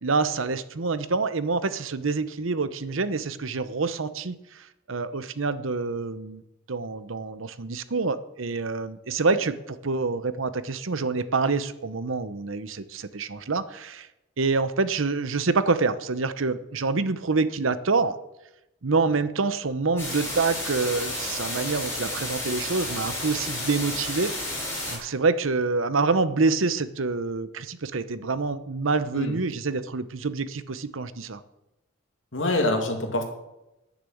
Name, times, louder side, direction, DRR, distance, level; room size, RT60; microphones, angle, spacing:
voice 1, 0.0-6.4 6.7-14.1 14.4-18.2 18.8-24.5 24.9-31.4, right 4 dB, 85° right, 13 dB, 0.9 m, -26 dB
sound 1, 20.0-25.0, left 1 dB, 10° left, 6.6 m, -32 dB
voice 2, 32.3-33.2, left 2 dB, 75° left, 3 dB, 2.6 m, -25 dB
10.0 x 10.0 x 7.8 m, 0.92 s
head